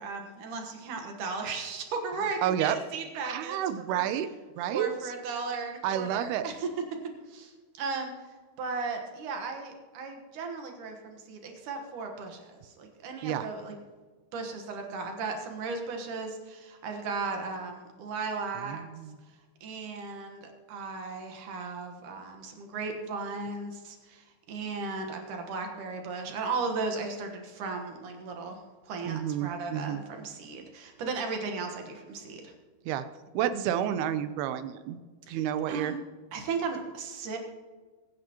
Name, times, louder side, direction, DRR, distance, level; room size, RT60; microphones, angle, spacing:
voice 1, 0.0-3.6 3.9-4.0 4.7-6.5 7.3-8.1 8.6-13.8 14.3-18.8 19.6-28.6 28.9-32.5 35.3-36.0 36.3-37.4, right 4 dB, 60° right, 4 dB, 2.6 m, -36 dB
voice 2, 2.4-2.8 3.2-4.3 4.6-4.9 5.8-6.5 13.2-13.5 18.7-19.2 29.1-30.0 32.9-33.1 33.3-35.0 35.3-35.9, right 10 dB, 85° right, 11 dB, 2.7 m, -30 dB
23.0 x 9.7 x 3.0 m, 1.4 s
omnidirectional pair, 4.5 m